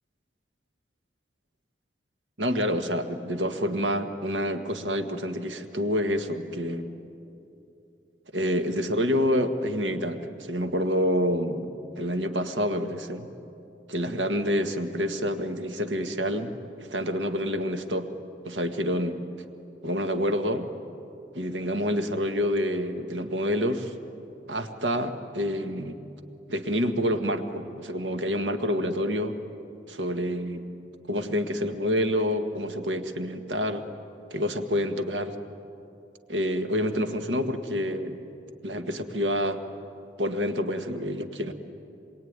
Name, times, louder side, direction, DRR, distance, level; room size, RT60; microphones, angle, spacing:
voice 1, 2.4-6.9 8.3-13.3 13.9-18.1 18.5-19.2 19.8-20.7 21.3-23.9 24.5-26.0 26.5-29.4 29.9-30.6 31.1-33.9 34.3-35.4 36.3-38.2 38.6-39.6 40.2-41.5, equal, 85° right, 6 dB, 1.7 m, -28 dB
26.5 x 22.5 x 9.6 m, 2.7 s
head